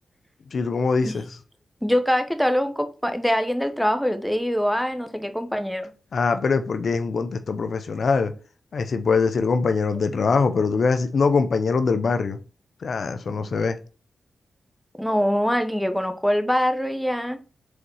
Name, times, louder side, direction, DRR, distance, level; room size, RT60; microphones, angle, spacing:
voice 1, 0.5-1.3 6.1-8.3 8.7-12.4 12.8-13.8, left 4 dB, 65° left, 0.6 m, -23 dB
voice 2, 1.8-5.9 15.0-17.4, equal, ahead, 1.1 m, -23 dB
5.0 x 4.1 x 4.7 m
supercardioid pair, 45°, 0 cm